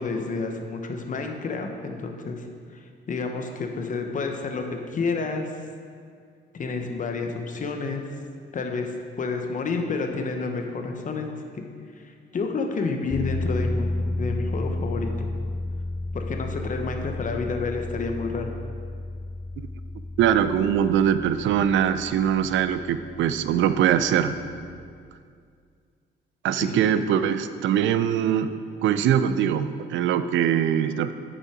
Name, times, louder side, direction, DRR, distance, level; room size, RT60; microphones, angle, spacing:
voice 1, 0.0-2.5 2.7-5.5 6.5-8.0 8.5-11.6 12.0-15.3 16.1-18.5 26.6-27.0, left 4 dB, 40° left, 4 dB, 0.9 m, -30 dB
sound 1, 13.1-25.0, left 2 dB, 20° left, 0.6 m, -32 dB
voice 2, 20.2-24.3 26.4-28.5 28.8-31.1, right 9 dB, 75° right, 12 dB, 0.4 m, -22 dB
8.4 x 5.5 x 4.8 m, 2.2 s
cardioid pair, 90°, 20 cm